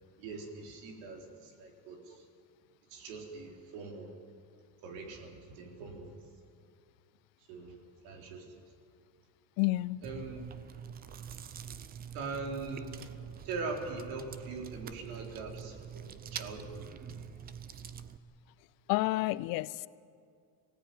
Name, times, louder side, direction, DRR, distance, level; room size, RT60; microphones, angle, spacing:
voice 1, 0.2-2.2 2.9-4.1 4.8-6.1 7.5-7.8 8.0-8.5 10.0-10.4 12.1-13.1 13.4-16.9, right 4 dB, 70° right, 2 dB, 4.3 m, -42 dB
voice 2, 9.6-10.0 18.9-19.9, left 19 dB, 50° left, 18 dB, 0.5 m, -30 dB
Chewing mastication, 10.0-18.2, right 8 dB, 20° right, 0.5 m, -45 dB
24.0 x 17.5 x 9.4 m, 2.3 s
cardioid pair, 165°, 46 cm